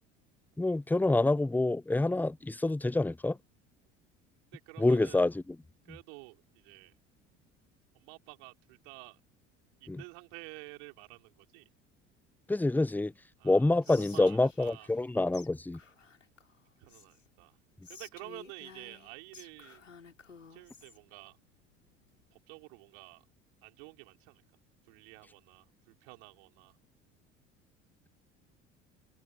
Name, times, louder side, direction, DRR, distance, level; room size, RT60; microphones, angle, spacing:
voice 1, 0.6-3.4 4.8-5.3 9.9-10.0 12.5-13.1 13.4-15.8, left 2 dB, 5° left, 0.8 m, -27 dB
voice 2, 4.5-5.2 5.8-7.0 7.9-9.2 9.8-11.7 13.4-14.9 16.8-17.6 17.9-19.9 20.5-21.4 22.3-23.2 23.6-24.4 24.8-26.8, right 40 dB or more, 60° right, 5.1 m, -50 dB
Whispering, 13.8-15.1 15.3-15.5 15.7-17.3 17.8-21.0, left 5 dB, 80° left, 6.2 m, -53 dB
figure-of-eight pair, 60°, 37 cm